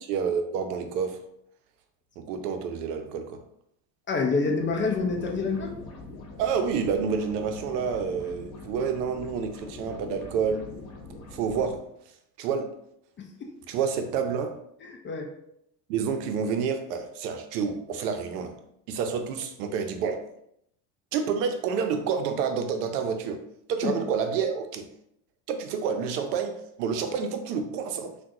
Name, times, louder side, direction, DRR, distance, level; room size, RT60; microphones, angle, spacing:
voice 1, 0.1-1.2 2.2-3.4 6.4-10.7 11.3-11.8 12.4-12.7 13.7-14.6 15.9-18.6 18.9-20.3 21.1-23.4 23.7-24.9 25.5-28.1, right 6 dB, 75° right, 7 dB, 0.6 m, -29 dB
voice 2, 4.1-5.7 13.2-13.5 15.0-15.3 23.8-23.9, left 4 dB, 25° left, 3 dB, 0.5 m, -27 dB
sound 1, 4.5-11.8, left 3 dB, 75° left, 0.9 m, -43 dB
3.6 x 2.2 x 2.7 m, 0.74 s
hypercardioid pair, 75°, 48 cm